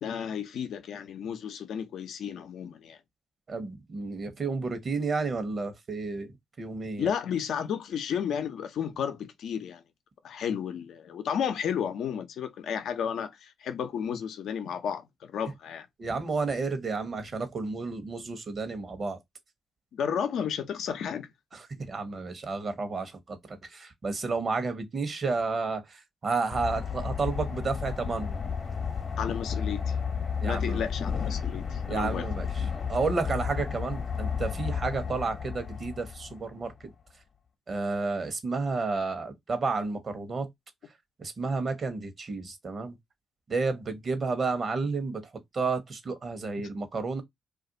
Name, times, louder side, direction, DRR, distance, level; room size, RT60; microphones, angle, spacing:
voice 1, 0.0-3.0 7.0-9.8 10.2-15.9 19.9-21.3 29.2-30.0 30.4-32.3, left 8 dB, 70° left, 0.6 m, -32 dB
voice 2, 3.5-6.3 6.6-7.1 16.0-19.2 21.8-28.4 30.4-30.9 31.9-36.7 37.7-40.5 41.2-43.0 43.5-47.2, right 4 dB, 50° right, 0.9 m, -31 dB
sound 1, 26.5-36.7, left 6 dB, 50° left, 0.9 m, -32 dB
2.5 x 2.4 x 3.8 m
hypercardioid pair, 50°, 0 cm